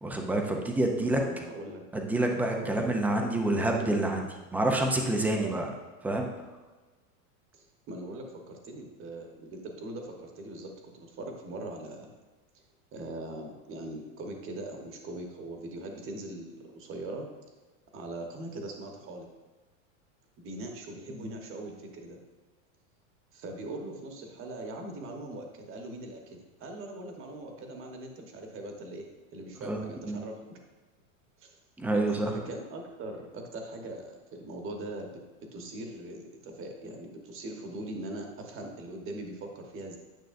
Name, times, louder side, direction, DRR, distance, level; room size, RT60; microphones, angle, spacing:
voice 1, 0.0-1.2 1.9-5.7 6.0-6.2 21.2-21.3 29.6-30.2 31.8-32.4, right 2 dB, 5° right, 2 dB, 0.4 m, -28 dB
voice 2, 1.2-1.8 2.6-4.1 5.3-5.5 7.5-12.2 12.9-17.3 17.9-19.3 20.4-22.2 23.3-29.0 29.3-30.6 31.4-31.6 31.9-35.1 35.5-40.0, right 1 dB, 30° right, 3 dB, 1.2 m, -41 dB
9.3 x 6.0 x 2.5 m, 1.3 s
supercardioid pair, 140°, 40 cm